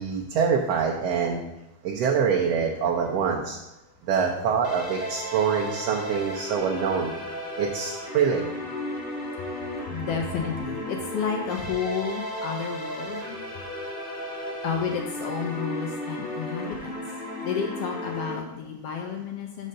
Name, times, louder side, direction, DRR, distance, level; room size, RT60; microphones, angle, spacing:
voice 1, 0.0-1.4 1.8-3.6 4.0-7.2 7.6-8.5, right 6 dB, 70° right, 0 dB, 1.6 m, -25 dB
sound 1, 4.6-18.4, left 1 dB, 20° left, 1.3 m, -34 dB
voice 2, 9.3-13.4 14.6-17.0 17.4-19.7, left 6 dB, 75° left, 2 dB, 1.4 m, -31 dB
5.5 x 5.2 x 6.5 m, 0.92 s
omnidirectional pair, 3.4 m